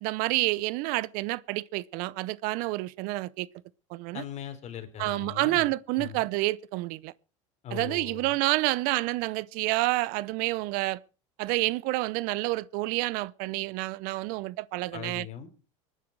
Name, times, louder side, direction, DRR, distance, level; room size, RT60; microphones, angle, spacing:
voice 1, 0.0-3.5 3.9-4.2 5.0-7.1 7.7-11.0 11.4-15.3, right 20 dB, 60° right, 0.7 m, -29 dB
voice 2, 4.1-5.7 6.0-6.3 7.6-8.4 14.9-15.6, left 9 dB, 45° left, 3.8 m, -40 dB
23.5 x 10.0 x 4.7 m
hypercardioid pair, 90°, 16 cm